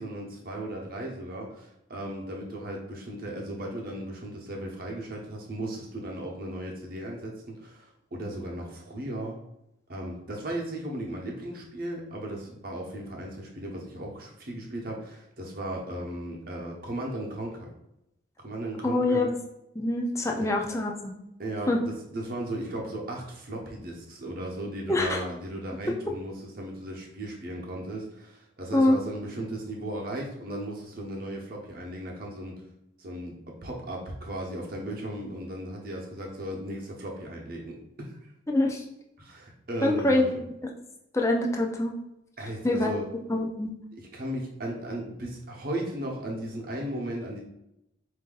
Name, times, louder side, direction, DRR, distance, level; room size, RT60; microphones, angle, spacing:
voice 1, 0.0-9.4 9.9-17.7 18.4-19.3 20.4-20.5 21.4-32.6 33.0-38.3 39.2-40.4 42.4-43.1 43.9-47.4, right 1 dB, 50° right, -1 dB, 0.9 m, -36 dB
voice 2, 18.8-19.4 19.8-20.9 21.7-21.8 24.9-25.2 28.7-29.0 38.5-38.8 39.8-40.4 41.1-41.9 42.6-42.9 43.3-43.7, left 2 dB, 15° left, 0 dB, 0.5 m, -24 dB
4.3 x 2.7 x 3.8 m, 0.86 s
head